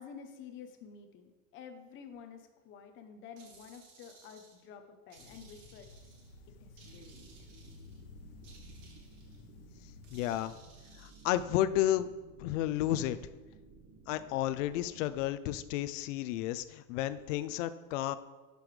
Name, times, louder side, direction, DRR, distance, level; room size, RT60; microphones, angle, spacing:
voice 1, 0.0-5.9 6.6-7.5, left 6 dB, 30° left, 6 dB, 0.8 m, -50 dB
sound 1, 3.4-4.7 5.1-6.3 6.8-8.0 8.4-9.4 10.0-11.4, right 4 dB, 55° right, 2.0 m, -60 dB
sound 2, 5.2-10.4, left 2 dB, 85° left, 1.2 m, -54 dB
sound 3, 6.8-15.2, right 2 dB, 35° right, 1.5 m, -56 dB
voice 2, 10.1-10.5 11.0-12.1 12.4-13.2 14.1-18.2, left 13 dB, 65° left, 14 dB, 0.6 m, -32 dB
9.4 x 6.9 x 3.3 m, 1.3 s
supercardioid pair, 160°, 40 cm